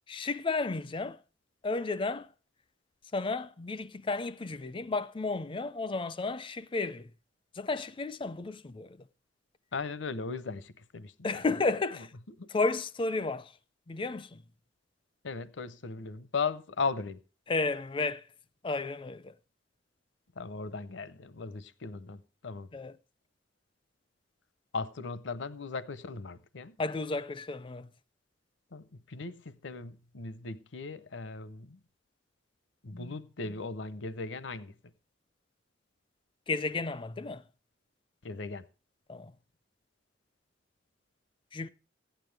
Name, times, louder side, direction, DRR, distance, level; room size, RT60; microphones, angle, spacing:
voice 1, 0.1-1.2 1.6-2.3 3.1-7.1 7.5-9.1 11.2-12.1 12.5-13.5 13.9-14.4 17.5-18.3 18.6-19.3 22.7-23.0 26.8-27.9 32.9-33.2 36.5-37.4 39.1-39.3 41.5-41.7, left 3 dB, 25° left, 0.4 m, -33 dB
voice 2, 9.7-11.6 12.4-12.5 15.2-17.2 20.4-22.7 24.7-26.8 28.7-31.8 32.8-34.7 38.2-38.7, left 4 dB, 70° left, 0.7 m, -37 dB
15.0 x 9.1 x 3.3 m
head